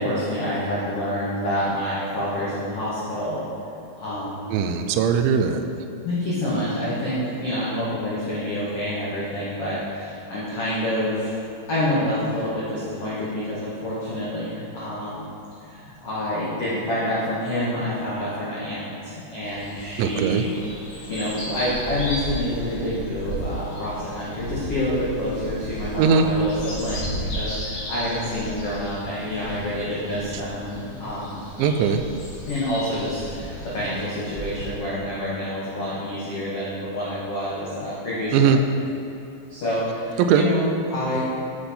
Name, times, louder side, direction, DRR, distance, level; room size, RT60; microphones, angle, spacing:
voice 1, 0.0-3.4 4.0-4.5 6.0-11.3 11.7-15.2 15.7-20.6 20.9-31.4 32.4-38.6 39.5-41.2, left 1 dB, 75° left, -9 dB, 1.4 m, -27 dB
voice 2, 4.5-5.6 20.0-20.4 26.0-26.2 31.6-32.0 38.3-38.6 40.2-40.4, right 7 dB, 90° right, 7 dB, 2.9 m, -19 dB
sound 1, 19.4-34.7, equal, 50° left, 1.4 m, -34 dB
8.1 x 8.0 x 4.2 m, 2.9 s
omnidirectional pair, 5.2 m